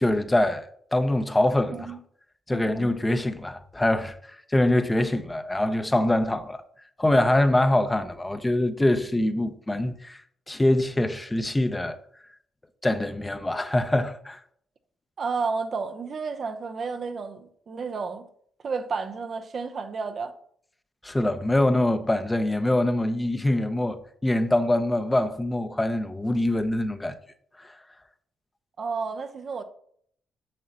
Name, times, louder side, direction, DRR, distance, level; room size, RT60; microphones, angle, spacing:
voice 1, 0.0-1.9 2.5-4.2 4.5-6.6 7.0-10.2 10.5-12.0 12.8-14.4 21.0-27.2 27.6-27.7, left 1 dB, 20° left, 0.8 m, -24 dB
voice 2, 15.2-18.3 18.6-20.3 28.8-29.6, right 4 dB, 50° right, 0.8 m, -31 dB
7.6 x 7.3 x 2.9 m
hypercardioid pair, 45°, 0 cm